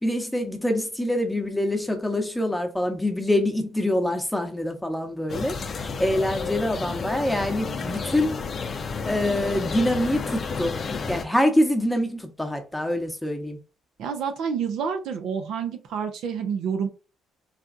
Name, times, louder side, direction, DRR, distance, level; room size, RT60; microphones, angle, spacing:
voice 1, 0.0-8.4 9.0-13.6, left 1 dB, 5° left, 0.9 m, -25 dB
sound 1, 5.3-11.3, left 5 dB, 45° left, 0.5 m, -31 dB
voice 2, 14.0-16.9, right 6 dB, 70° right, 0.6 m, -28 dB
4.1 x 2.2 x 2.6 m
supercardioid pair, 60°, 0 cm